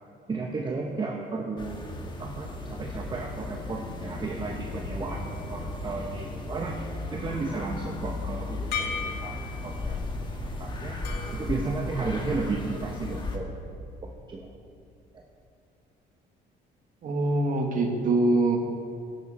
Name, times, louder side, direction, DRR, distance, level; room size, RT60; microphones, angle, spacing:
voice 1, 0.3-11.0 11.3-13.5 14.0-14.5, right 3 dB, 25° right, 0 dB, 1.0 m, -34 dB
sound 1, 1.6-13.4, left 2 dB, 25° left, 1.4 m, -35 dB
sound 2, 5.1-6.8 8.7-10.0 11.0-12.6, left 6 dB, 75° left, 1.8 m, -39 dB
voice 2, 17.0-18.6, right 2 dB, 50° right, 3 dB, 1.6 m, -24 dB
12.5 x 10.0 x 4.3 m, 2.5 s
cardioid pair, 110°, 17 cm